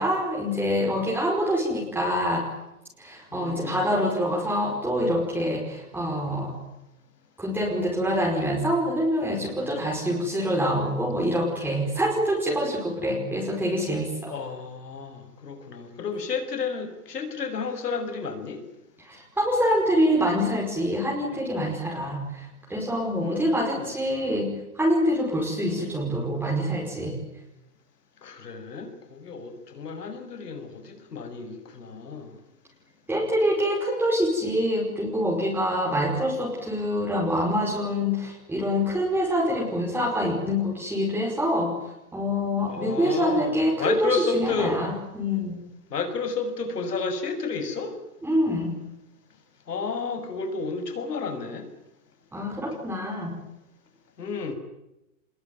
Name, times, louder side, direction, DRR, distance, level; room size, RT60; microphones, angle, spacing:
voice 1, 0.0-2.5 3.0-6.5 7.4-14.4 19.0-27.2 33.1-41.7 42.1-45.6 48.2-48.7 52.3-53.4, equal, 5° right, -3 dB, 5.3 m, -25 dB
voice 2, 3.3-3.9 14.3-18.6 23.2-23.9 25.7-25.9 28.2-32.3 42.7-44.8 45.9-47.9 49.7-51.7 54.2-54.5, left 4 dB, 85° left, 8 dB, 6.7 m, -31 dB
25.5 x 21.5 x 9.5 m, 0.91 s
hypercardioid pair, 145°, 46 cm